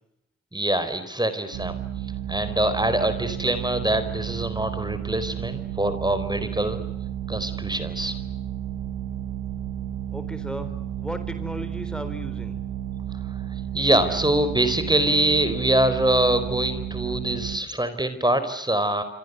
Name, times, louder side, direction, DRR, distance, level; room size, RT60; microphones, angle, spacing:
voice 1, 0.5-1.8 2.3-6.8 7.3-8.1 13.3-13.4 13.7-19.0, right 1 dB, 15° right, 11 dB, 4.3 m, -24 dB
sound 1, 1.5-17.6, right 11 dB, 85° right, 1.5 m, -32 dB
voice 2, 10.1-10.7 11.0-12.6, equal, 5° left, 9 dB, 4.2 m, -35 dB
26.5 x 25.0 x 8.1 m, 0.85 s
hypercardioid pair, 40°, 32 cm